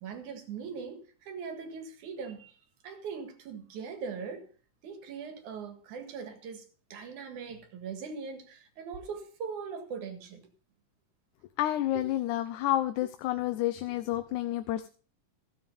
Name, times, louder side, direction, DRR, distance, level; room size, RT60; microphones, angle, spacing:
voice 1, 0.0-2.5 2.8-4.5 4.8-10.5 11.9-12.0, right 5 dB, 90° right, 3.2 m, -40 dB
voice 2, 11.6-14.9, left 13 dB, 90° left, 2.2 m, -30 dB
15.5 x 7.5 x 5.3 m
omnidirectional pair, 3.4 m